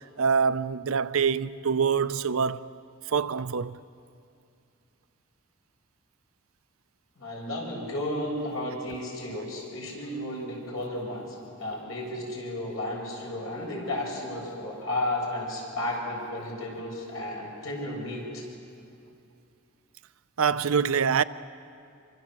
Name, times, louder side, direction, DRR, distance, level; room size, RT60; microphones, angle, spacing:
voice 1, 0.2-2.6 3.1-3.8 20.4-21.2, right 6 dB, 85° right, 0.6 m, -25 dB
voice 2, 7.2-18.4, left 1 dB, 85° left, 7.2 m, -33 dB
26.5 x 24.5 x 7.7 m
head